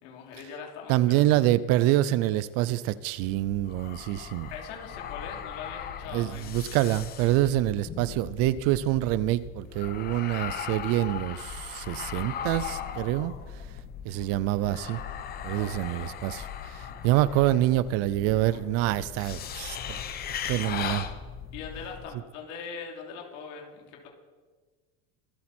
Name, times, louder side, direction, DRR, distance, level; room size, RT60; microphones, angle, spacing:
voice 1, 0.0-1.2 4.5-6.5 15.5-16.2 21.5-24.1, left 6 dB, 80° left, 3.2 m, -41 dB
voice 2, 0.9-4.5 6.1-13.3 14.1-15.0 15.4-19.8 20.5-21.1, right 15 dB, 45° right, 0.4 m, -26 dB
sound 1, 3.2-22.1, left 8 dB, 25° left, 0.8 m, -38 dB
25.0 x 8.7 x 4.3 m
cardioid pair, 165°, 36 cm